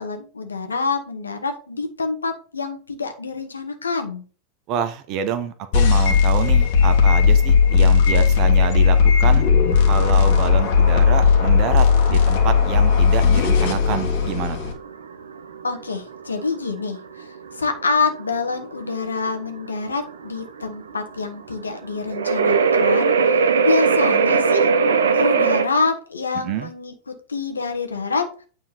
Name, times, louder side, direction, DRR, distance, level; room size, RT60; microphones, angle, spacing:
voice 1, 0.0-4.2 15.6-24.7 25.1-26.9 27.3-28.3, left 4 dB, 75° left, 1.3 m, -26 dB
voice 2, 4.7-9.4 9.9-14.6 26.4-26.7, right 8 dB, 40° right, 0.9 m, -27 dB
sound 1, 5.7-14.7, left 6 dB, 50° left, 1.7 m, -16 dB
sound 2, 7.7-25.6, right 5 dB, 65° right, 0.8 m, -22 dB
9.0 x 3.7 x 4.4 m
figure-of-eight pair, 90°, 0 cm